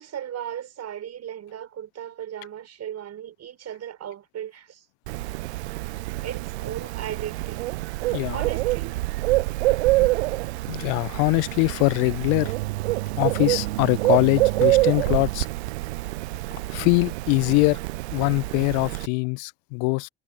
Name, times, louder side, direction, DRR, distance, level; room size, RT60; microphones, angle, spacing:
voice 1, 0.0-4.8 6.2-7.7 8.3-8.9, right 10 dB, 50° right, 6.4 m, -36 dB
Bird, 5.1-19.1, right 20 dB, 75° right, 0.5 m, -26 dB
voice 2, 8.1-8.4 10.0-10.1 10.7-12.5 13.2-15.5 16.5-17.8 18.1-20.1, left 39 dB, 65° left, 0.8 m, -23 dB
figure-of-eight pair, 50°, 33 cm